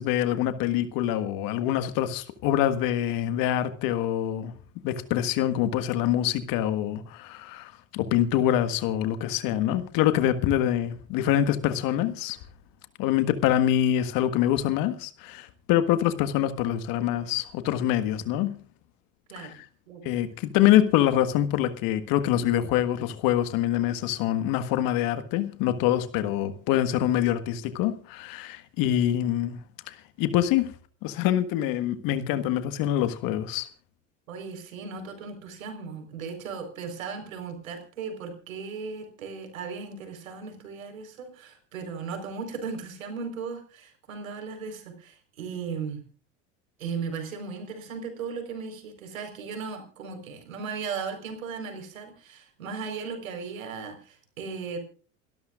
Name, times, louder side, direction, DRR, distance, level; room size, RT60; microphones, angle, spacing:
voice 1, 0.0-4.5 4.8-12.4 13.0-18.6 19.4-19.6 20.0-29.6 29.9-30.7 31.0-33.7, left 12 dB, 60° left, 1.7 m, -25 dB
voice 2, 34.3-46.0 46.8-54.8, right 5 dB, 85° right, 4.5 m, -37 dB
28.5 x 13.0 x 2.5 m
hypercardioid pair, 80°, 39 cm